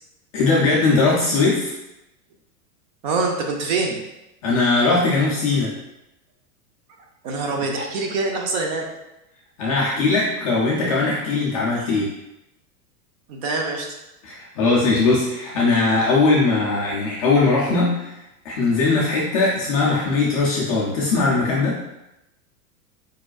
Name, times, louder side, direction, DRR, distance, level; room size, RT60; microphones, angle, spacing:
voice 1, 0.3-1.7 4.4-5.7 9.6-12.1 14.2-18.1 18.4-21.8, left 3 dB, 25° left, -5 dB, 0.4 m, -20 dB
voice 2, 3.0-4.0 7.2-8.9 13.3-13.9, right 3 dB, 35° right, 2 dB, 0.5 m, -24 dB
4.8 x 4.8 x 2.3 m, 0.92 s
supercardioid pair, 155°, 47 cm